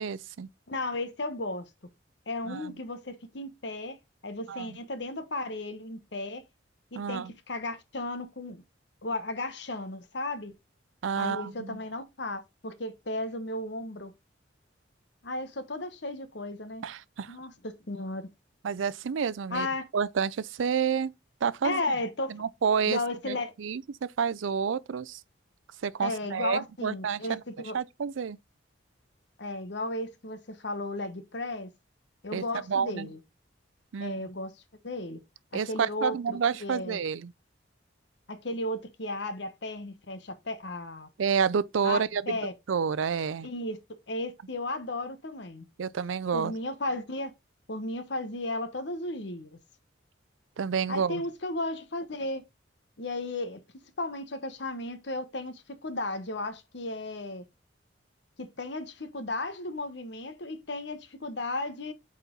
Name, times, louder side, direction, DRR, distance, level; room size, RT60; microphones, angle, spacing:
voice 1, 0.0-0.5 2.5-2.7 4.5-4.8 6.9-7.3 11.0-11.8 16.8-17.3 18.6-19.7 19.9-21.1 21.4-21.8 22.3-23.0 23.3-25.2 25.8-27.4 27.7-28.4 32.3-33.1 33.9-34.2 35.5-37.3 41.2-42.4 42.7-43.5 45.8-46.5 50.6-51.2, right 6 dB, 90° right, 0.5 m, -29 dB
voice 2, 0.7-1.7 2.3-6.4 6.9-8.6 9.0-10.5 11.2-14.1 15.2-16.9 17.3-18.3 19.5-19.9 21.6-22.3 22.9-23.5 26.0-27.8 29.4-31.7 32.2-33.2 34.0-34.5 34.8-35.2 35.7-37.0 38.3-41.1 41.8-42.0 42.3-42.5 43.4-43.8 44.1-45.6 46.3-47.3 47.7-49.6 50.9-52.4 53.0-53.6 54.0-57.5 58.4-61.9, left 2 dB, 65° left, 1.1 m, -34 dB
8.2 x 4.3 x 3.8 m
head